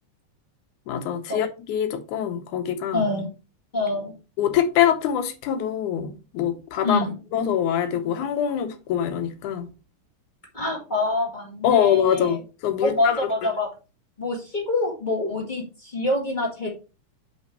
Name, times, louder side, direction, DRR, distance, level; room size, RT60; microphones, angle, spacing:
voice 1, 0.9-3.1 4.4-7.1 7.3-9.7 11.6-13.3, left 9 dB, 75° left, 2.1 m, -24 dB
voice 2, 2.9-3.3 3.7-4.2 6.8-7.1 10.5-12.4 12.8-13.7 14.2-16.7, left 2 dB, 20° left, 1.2 m, -26 dB
5.6 x 5.2 x 4.5 m
omnidirectional pair, 3.9 m